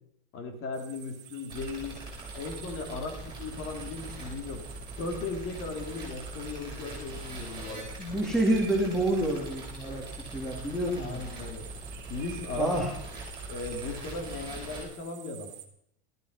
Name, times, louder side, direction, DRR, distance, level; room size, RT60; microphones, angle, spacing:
voice 1, 0.3-2.0 2.3-4.6 5.0-7.9 11.0-11.7 12.1-12.9 13.5-15.5, left 3 dB, 40° left, 5 dB, 3.2 m, -37 dB
sound 1, 0.7-15.7, right 11 dB, 30° right, 1.9 m, -49 dB
sound 2, 1.5-14.8, right 2 dB, 15° right, 6.6 m, -42 dB
voice 2, 8.0-10.1 10.3-11.2 12.6-12.9, right 1 dB, ahead, -1 dB, 2.5 m, -28 dB
14.0 x 13.5 x 5.6 m, 0.71 s
supercardioid pair, 150°, 34 cm